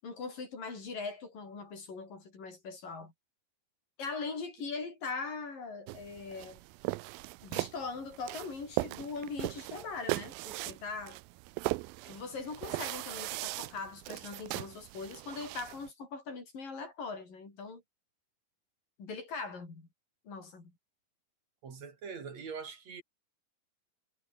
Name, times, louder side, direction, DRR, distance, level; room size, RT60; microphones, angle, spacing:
voice 1, 0.0-3.1 4.0-6.6 7.4-11.2 12.1-17.8 19.0-19.9 20.3-20.7, left 4 dB, 60° left, 8.8 m, -41 dB
sound 1, 5.9-15.9, right 22 dB, 80° right, 2.3 m, -39 dB
voice 2, 21.6-23.0, right 6 dB, 45° right, 4.4 m, -43 dB
omnidirectional pair, 4.4 m